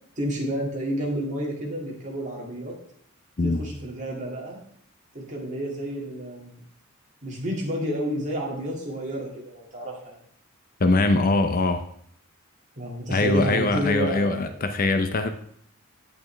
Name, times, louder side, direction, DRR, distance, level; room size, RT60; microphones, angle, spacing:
voice 1, 0.2-2.7 3.4-4.6 5.1-6.6 7.2-10.2 12.8-14.7, right 1 dB, 35° right, -3 dB, 2.2 m, -30 dB
voice 2, 10.8-11.8 13.1-15.3, left 2 dB, 40° left, 8 dB, 0.5 m, -22 dB
9.0 x 8.2 x 3.3 m, 0.66 s
head